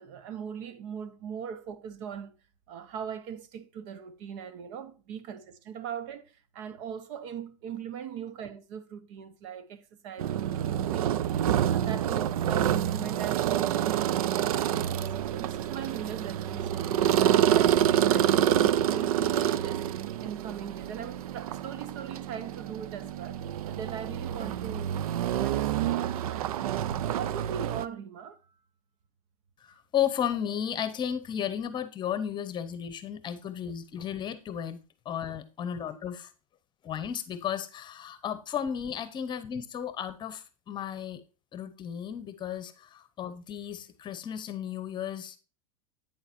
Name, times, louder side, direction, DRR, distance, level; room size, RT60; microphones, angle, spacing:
voice 1, 0.0-2.4 2.7-11.3 11.7-19.9 20.2-23.4 23.7-26.7 27.1-28.4, right 8 dB, 55° right, 0.9 m, -40 dB
sound 1, 10.2-27.9, right 11 dB, 90° right, 0.5 m, -27 dB
voice 2, 29.6-34.8 35.0-36.3 36.8-41.2 41.5-45.4, left 9 dB, 25° left, 0.9 m, -34 dB
8.9 x 7.2 x 2.6 m
supercardioid pair, 135°, 18 cm